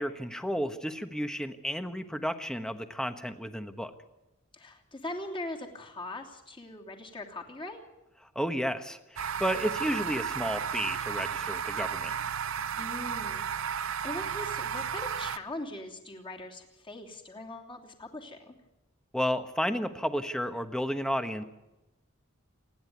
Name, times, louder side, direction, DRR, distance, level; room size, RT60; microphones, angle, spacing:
voice 1, 0.0-3.9 8.3-12.1 19.1-21.4, equal, 5° left, 8 dB, 1.2 m, -32 dB
voice 2, 4.5-7.8 12.8-18.5, left 1 dB, 25° left, 1 dB, 3.0 m, -41 dB
sound 1, 9.2-15.4, right 7 dB, 70° right, 0.6 m, -33 dB
28.0 x 10.5 x 9.4 m, 0.98 s
head